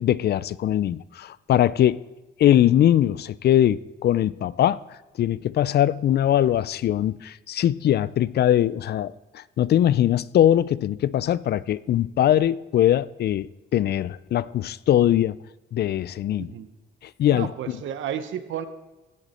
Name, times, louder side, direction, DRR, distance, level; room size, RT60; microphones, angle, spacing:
voice 1, 0.0-2.0 2.4-4.8 5.2-15.4 15.7-16.5 17.2-17.5, left 11 dB, 55° left, 0.4 m, -21 dB
voice 2, 16.4-16.7 17.3-18.7, right 9 dB, 75° right, 0.9 m, -32 dB
16.0 x 8.1 x 4.3 m
cardioid pair, 90°, 20 cm